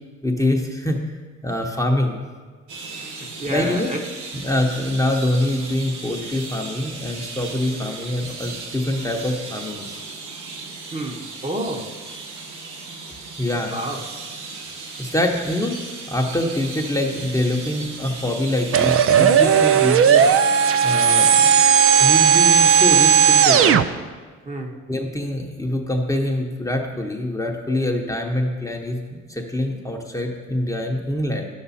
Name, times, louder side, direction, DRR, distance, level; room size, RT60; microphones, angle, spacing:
voice 1, 0.2-1.0 1.4-2.2 3.5-3.9 4.3-10.0 13.4-13.7 15.0-15.8 16.1-20.3 20.8-21.5 22.0-23.9 24.9-31.5, left 1 dB, 10° left, 0 dB, 0.9 m, -24 dB
sound 1, 2.7-21.6, right 3 dB, 85° right, 1.2 m, -36 dB
voice 2, 2.9-4.0 10.9-12.0 13.7-14.0 24.5-24.7, right 1 dB, 25° right, 2 dB, 1.1 m, -30 dB
sound 2, 18.7-23.8, right 7 dB, 50° right, 0.5 m, -15 dB
9.9 x 7.1 x 4.2 m, 1.4 s
cardioid pair, 90°, 30 cm